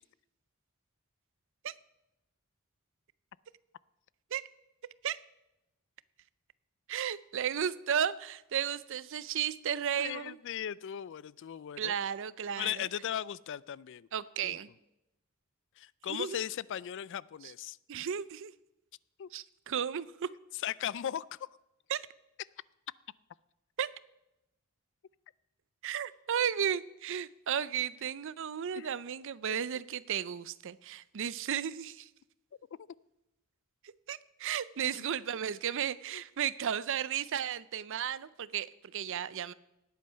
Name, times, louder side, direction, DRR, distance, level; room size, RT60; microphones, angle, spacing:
voice 1, 6.9-10.4 11.8-12.9 14.1-14.7 16.1-16.4 17.9-18.5 19.3-20.3 21.9-22.0 23.8-23.9 25.8-32.1 34.1-39.5, right 8 dB, 60° right, 18 dB, 0.5 m, -34 dB
voice 2, 10.0-11.9 12.6-14.1 14.4-14.6 15.8-17.8 19.2-19.3 20.6-21.5 28.8-28.9 29.5-29.6 34.9-35.0 36.1-36.2, left 10 dB, 60° left, 21 dB, 0.4 m, -37 dB
18.5 x 8.5 x 5.7 m, 0.92 s
head